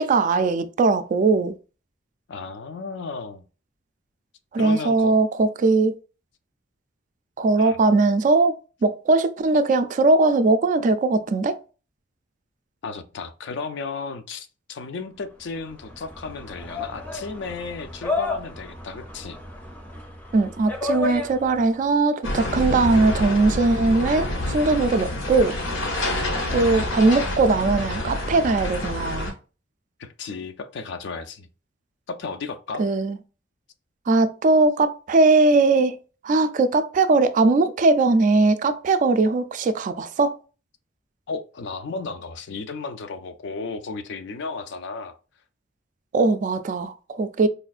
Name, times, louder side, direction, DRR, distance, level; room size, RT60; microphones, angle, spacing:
voice 1, 0.0-1.5 4.5-5.9 7.4-11.6 20.3-25.5 26.5-29.3 32.8-33.2 34.1-36.0 36.2-40.4 46.1-47.5, right 3 dB, 40° right, 0.3 m, -20 dB
voice 2, 2.3-3.4 4.6-5.1 7.6-7.8 12.8-19.4 30.0-31.5 32.1-32.9 41.3-45.2, left 4 dB, 65° left, 0.4 m, -34 dB
sound 1, 15.4-21.8, left 3 dB, 10° left, 0.6 m, -32 dB
sound 2, 22.2-29.3, left 1 dB, 90° left, 0.8 m, -27 dB
4.2 x 2.3 x 2.4 m
head